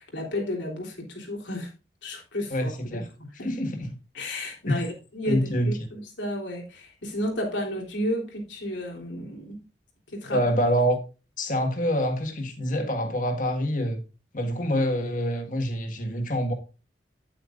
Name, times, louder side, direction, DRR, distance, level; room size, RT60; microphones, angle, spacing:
voice 1, 0.1-1.7 2.0-2.7 3.2-3.5 4.2-4.9 5.1-9.6 10.1-10.4, left 1 dB, 85° left, 3.4 m, -32 dB
voice 2, 2.5-3.1 3.4-3.9 4.7-4.9 5.3-5.7 10.3-11.0 11.4-14.0 14.3-16.5, equal, 45° left, 1.7 m, -26 dB
9.9 x 8.9 x 2.5 m
head